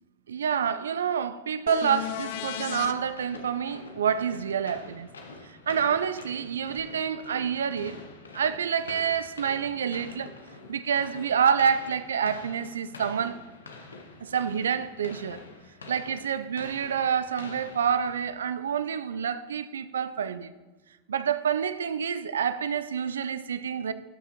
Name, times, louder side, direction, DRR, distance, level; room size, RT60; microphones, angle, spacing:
voice 1, 0.3-5.1 5.5-8.0 8.3-10.3 10.7-13.4 14.2-15.4 15.9-20.5 21.1-23.9, right 7 dB, 75° right, 0.4 m, -28 dB
sound 1, 1.7-18.5, left 3 dB, 80° left, 0.9 m, -46 dB
sound 2, 1.7-2.9 6.8-6.9, left 11 dB, 60° left, 0.4 m, -34 dB
12.0 x 5.6 x 2.9 m
figure-of-eight pair, 85°, 0 cm